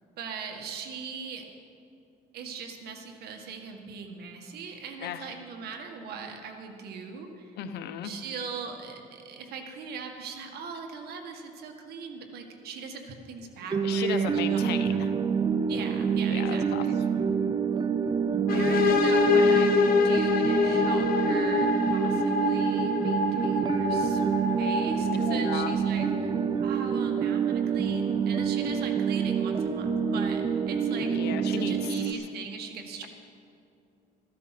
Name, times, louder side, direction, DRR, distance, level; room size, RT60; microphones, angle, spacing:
voice 1, 0.2-1.4 2.3-7.5 8.0-15.0 15.7-17.0 18.5-24.2 24.6-31.2 31.5-33.1, right 5 dB, 70° right, 4 dB, 1.8 m, -40 dB
voice 2, 5.0-5.3 7.6-8.1 13.8-15.1 16.3-16.9 18.5-18.8 25.2-25.7 31.1-32.2, left 9 dB, 75° left, 8 dB, 1.1 m, -35 dB
sound 1, 13.7-32.1, right 7 dB, 25° right, 0.6 m, -27 dB
sound 2, 18.5-26.1, left 5 dB, 60° left, 1.4 m, -26 dB
13.5 x 13.0 x 6.0 m, 2.6 s
cardioid pair, 110°, 17 cm